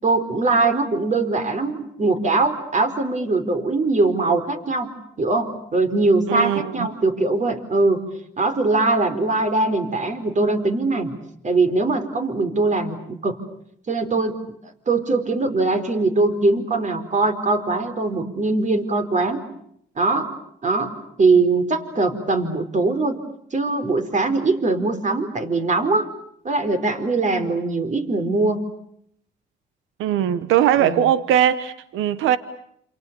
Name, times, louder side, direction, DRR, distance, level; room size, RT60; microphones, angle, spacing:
voice 1, 0.0-4.9 5.2-8.0 8.4-11.1 11.4-13.4 13.9-14.4 14.9-19.4 20.0-20.3 20.6-20.9 21.2-23.2 23.5-26.1 26.4-28.6 30.8-31.1, right 3 dB, 40° right, 4.5 m, -21 dB
voice 2, 6.3-6.9 30.0-32.4, right 10 dB, 90° right, 1.1 m, -20 dB
28.5 x 28.0 x 6.9 m
cardioid pair, 90°, 20 cm